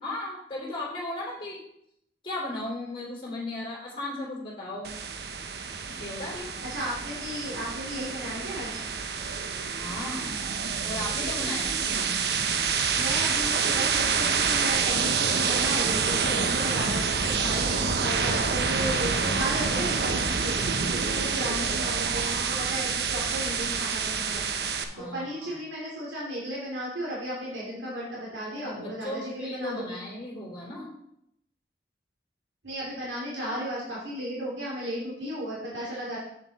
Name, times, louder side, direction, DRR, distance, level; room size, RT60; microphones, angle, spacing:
voice 1, 0.0-1.6 2.2-5.0 5.9-6.5 9.8-10.3 10.8-11.7 24.9-25.6 28.7-30.9, left 2 dB, 25° left, -4 dB, 3.1 m, -36 dB
sound 1, 4.8-24.8, right 5 dB, 60° right, 0.7 m, -27 dB
voice 2, 6.6-8.8 11.7-11.9 12.7-20.6 20.9-24.4 25.0-30.0 32.6-36.2, equal, 85° right, -6 dB, 2.6 m, -34 dB
7.9 x 7.2 x 4.1 m, 0.76 s
head